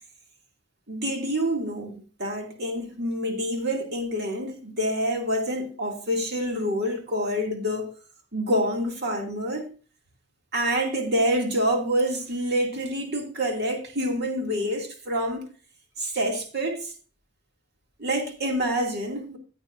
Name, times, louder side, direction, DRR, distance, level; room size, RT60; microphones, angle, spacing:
voice 1, 0.9-7.9 8.3-9.7 10.5-15.5 16.0-16.9 18.0-19.4, equal, 60° right, 2.3 m, -27 dB
14.5 x 8.4 x 2.5 m
head